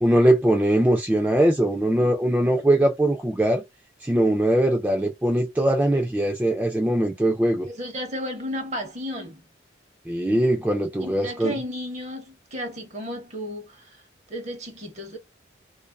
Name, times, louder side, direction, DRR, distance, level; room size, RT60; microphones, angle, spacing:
voice 1, 0.0-3.6 4.0-7.7 10.1-11.5, right 1 dB, 10° right, 0.3 m, -21 dB
voice 2, 7.7-9.4 11.0-14.0 14.3-15.2, equal, 40° right, 0.7 m, -33 dB
2.5 x 2.3 x 2.2 m
head